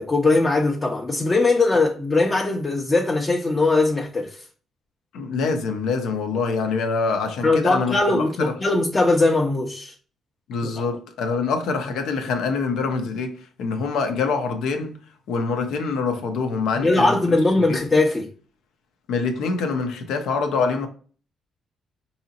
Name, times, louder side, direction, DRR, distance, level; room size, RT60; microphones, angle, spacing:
voice 1, 0.0-4.4 7.4-9.9 10.6-10.9 16.8-18.3, left 2 dB, 25° left, 0.6 m, -20 dB
voice 2, 5.1-8.5 10.5-15.0 15.3-17.4 17.7-17.8 19.1-20.9, left 4 dB, 85° left, 0.7 m, -25 dB
4.8 x 2.8 x 2.8 m
cardioid pair, 90°, 0 cm